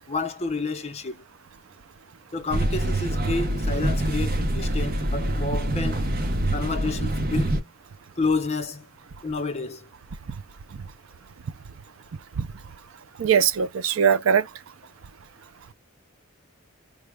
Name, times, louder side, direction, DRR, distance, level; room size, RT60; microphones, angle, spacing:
voice 1, 0.1-1.2 2.3-6.1 6.5-7.7 8.2-8.9 9.2-9.9, left 3 dB, 30° left, 0.8 m, -30 dB
sound 1, 2.5-7.6, right 1 dB, 45° right, 0.8 m, -25 dB
voice 2, 13.2-14.5, right 7 dB, 80° right, 0.5 m, -21 dB
5.2 x 2.3 x 3.3 m
head